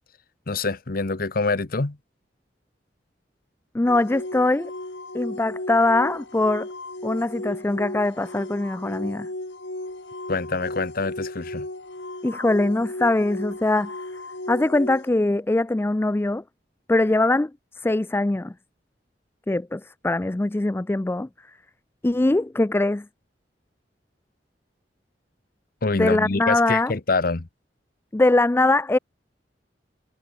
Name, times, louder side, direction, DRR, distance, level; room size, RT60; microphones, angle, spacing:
voice 1, 0.5-2.0 10.3-11.7 25.8-27.5, left 3 dB, 55° left, 1.0 m, -25 dB
voice 2, 3.7-4.7 5.1-6.7 7.0-9.3 12.2-13.9 14.5-16.4 16.9-17.5 17.8-18.5 19.5-21.3 22.0-23.0 26.0-26.9 28.1-29.0, left 2 dB, 15° left, 0.4 m, -22 dB
sound 1, 3.9-15.1, left 1 dB, 85° left, 4.0 m, -35 dB
head